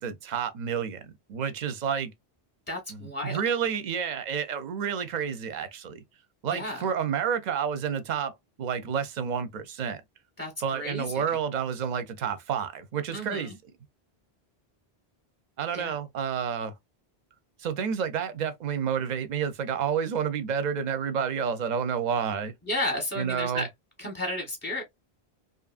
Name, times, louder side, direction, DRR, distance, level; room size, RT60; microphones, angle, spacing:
voice 1, 0.0-2.1 2.9-6.0 6.4-10.0 10.6-13.5 15.6-16.7 17.6-22.5 23.2-23.7, right 7 dB, 55° right, 0.6 m, -30 dB
voice 2, 2.7-3.4 6.5-6.8 10.4-11.2 13.1-13.5 15.7-16.0 22.7-23.7 24.0-24.8, left 1 dB, 10° left, 0.7 m, -33 dB
2.8 x 2.5 x 2.4 m
omnidirectional pair, 1.1 m